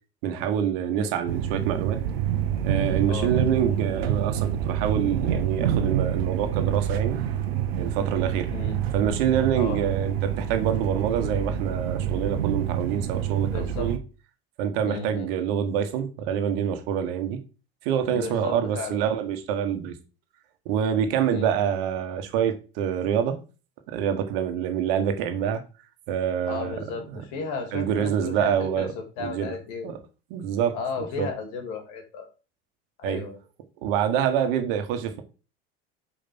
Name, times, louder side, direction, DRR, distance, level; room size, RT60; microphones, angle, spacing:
voice 1, 0.2-2.0 2.6-7.2 7.7-8.5 8.9-14.0 14.6-17.4 17.8-19.9 20.6-23.4 23.9-25.6 26.1-26.7 27.1-27.2 27.7-28.9 29.2-29.5 29.8-30.0 30.3-30.8 31.2-31.3 33.0-33.2 33.8-35.2, right 8 dB, 70° right, 1.5 m, -26 dB
sound 1, 1.3-14.0, right 9 dB, 90° right, 1.0 m, -27 dB
voice 2, 3.1-3.4 8.5-8.8 9.6-9.9 13.4-13.9 14.8-15.3 18.1-19.0 21.3-21.5 26.5-29.9 30.7-32.3 33.0-33.4, left 4 dB, 65° left, 2.8 m, -34 dB
5.2 x 5.0 x 6.0 m
hypercardioid pair, 90°, 30 cm